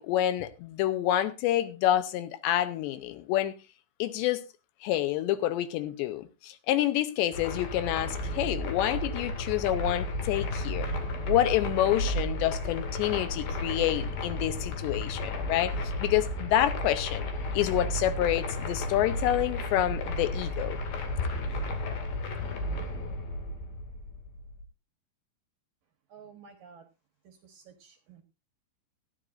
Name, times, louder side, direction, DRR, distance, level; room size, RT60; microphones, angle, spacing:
voice 1, 0.0-3.5 4.0-4.4 4.8-10.9 11.2-15.7 16.0-17.3 17.5-20.8, left 13 dB, 80° left, 2.9 m, -28 dB
sound 1, 7.3-24.6, left 1 dB, 60° left, 3.7 m, -33 dB
voice 2, 26.1-26.9 27.2-28.2, right 6 dB, 65° right, 2.4 m, -52 dB
18.5 x 12.5 x 2.6 m
omnidirectional pair, 5.3 m